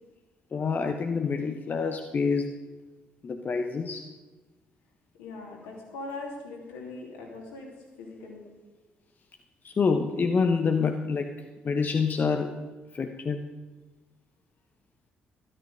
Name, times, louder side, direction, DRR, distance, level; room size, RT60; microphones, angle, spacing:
voice 1, 0.5-2.5 3.2-4.1 9.6-11.4 11.6-12.6 12.9-13.4, left 5 dB, 40° left, 6 dB, 0.9 m, -27 dB
voice 2, 5.2-7.7 8.0-8.5, left 3 dB, 70° left, -1 dB, 2.9 m, -40 dB
13.0 x 12.5 x 5.1 m, 1.2 s
figure-of-eight pair, 45°, 5 cm